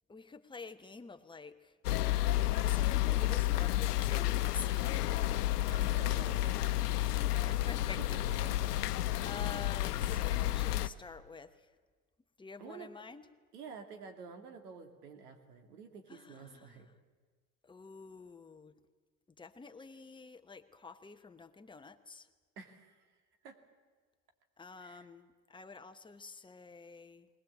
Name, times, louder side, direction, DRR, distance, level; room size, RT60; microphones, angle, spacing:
voice 1, 0.1-1.8 2.6-5.2 7.3-8.7 9.2-11.7 12.4-13.3 16.1-16.9 17.6-18.8 19.3-22.3 24.6-27.3, left 4 dB, 10° left, 8 dB, 1.0 m, -49 dB
sound 1, 1.8-10.9, left 15 dB, 85° left, 0.9 m, -31 dB
voice 2, 5.7-6.8 7.5-7.6 8.1-8.7 12.6-12.9 13.5-16.9 22.6-23.0 23.4-23.6 24.8-25.1, right 5 dB, 85° right, 5 dB, 2.8 m, -50 dB
20.0 x 20.0 x 8.6 m, 1.5 s
hypercardioid pair, 110°, 45 cm